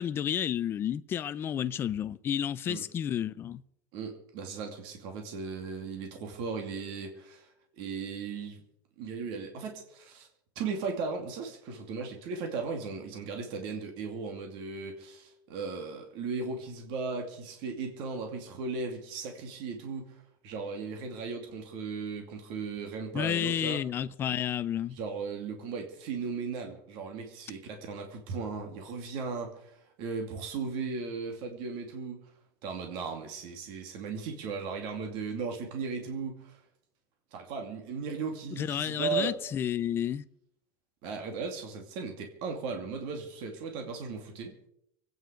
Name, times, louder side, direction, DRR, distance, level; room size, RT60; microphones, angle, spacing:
voice 1, 0.0-3.6 23.1-25.0 38.5-40.2, left 9 dB, 20° left, 0.5 m, -31 dB
voice 2, 3.9-7.5 7.8-8.6 9.0-10.3 10.6-20.1 20.4-23.8 25.0-32.2 32.6-36.6 37.3-39.3 41.0-44.5, right 5 dB, 50° right, 2.6 m, -37 dB
24.5 x 9.4 x 5.1 m
cardioid pair, 180°, 11 cm